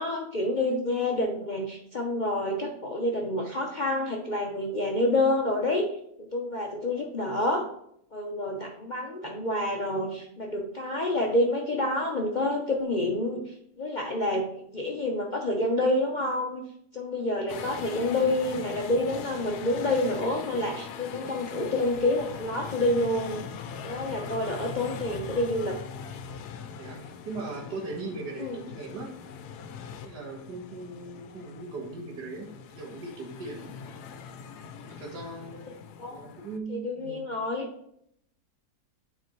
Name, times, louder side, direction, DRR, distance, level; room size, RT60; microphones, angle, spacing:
voice 1, 0.0-5.9 6.3-7.7 8.1-14.5 14.7-16.6 16.9-23.4 23.8-25.8 28.4-28.6 36.0-36.2 36.7-37.7, left 1 dB, 45° left, 0 dB, 0.6 m, -28 dB
sound 1, 17.5-36.6, left 6 dB, 80° left, 1.1 m, -41 dB
voice 2, 26.8-29.1 30.0-32.5 32.8-33.7 34.9-35.8 36.1-37.3, right 3 dB, 85° right, 0 dB, 2.0 m, -39 dB
9.2 x 4.3 x 3.1 m, 0.71 s
omnidirectional pair, 1.7 m